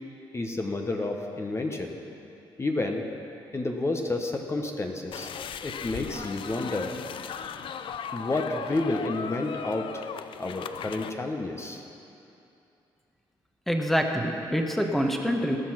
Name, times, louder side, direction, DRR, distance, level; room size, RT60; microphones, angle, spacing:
voice 1, 0.3-2.0 2.6-3.0 3.5-5.3 5.6-6.9 8.1-10.0 10.4-11.8, left 2 dB, 30° left, 3 dB, 1.1 m, -30 dB
sound 1, 5.1-11.1, left 7 dB, 60° left, 0.5 m, -37 dB
voice 2, 13.7-15.6, equal, ahead, 3 dB, 1.2 m, -26 dB
17.5 x 6.1 x 5.9 m, 2.8 s
supercardioid pair, 60°, 10 cm